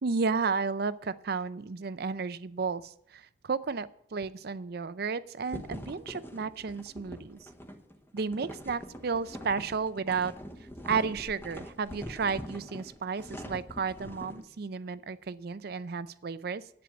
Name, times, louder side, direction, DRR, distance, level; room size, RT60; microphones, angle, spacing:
voice 1, 0.0-7.4 8.1-10.3 10.8-16.6, right 5 dB, 60° right, 15 dB, 0.5 m, -33 dB
sound 1, 5.5-14.4, equal, 15° left, 1.0 m, -43 dB
10.5 x 9.0 x 6.0 m, 0.72 s
head